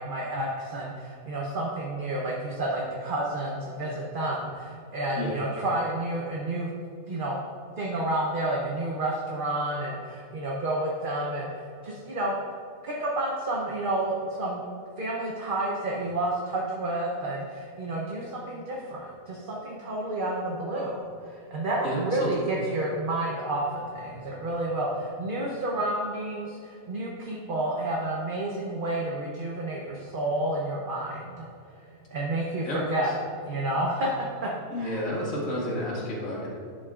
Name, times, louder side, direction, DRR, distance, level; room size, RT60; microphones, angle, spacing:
voice 1, 0.0-6.7 7.1-7.4 7.8-12.3 12.8-14.6 15.0-31.5 32.1-33.1 33.5-34.5 34.8-35.0, right 1 dB, 45° right, -3 dB, 0.9 m, -30 dB
voice 2, 21.8-22.5 32.6-33.1 34.7-36.5, equal, 75° left, -5 dB, 2.3 m, -31 dB
11.0 x 7.6 x 2.5 m, 2.4 s
omnidirectional pair, 1.5 m